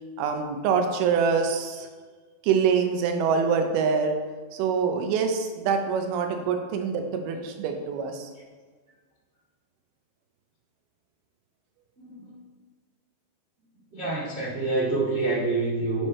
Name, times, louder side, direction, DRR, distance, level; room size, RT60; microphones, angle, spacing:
voice 1, 0.2-1.9 2.4-4.1 4.5-8.3, right 6 dB, 80° right, 5 dB, 2.6 m, -25 dB
voice 2, 12.0-12.4 13.9-16.1, right 3 dB, 50° right, -9 dB, 0.7 m, -27 dB
9.9 x 3.4 x 4.2 m, 1.5 s
omnidirectional pair, 4.6 m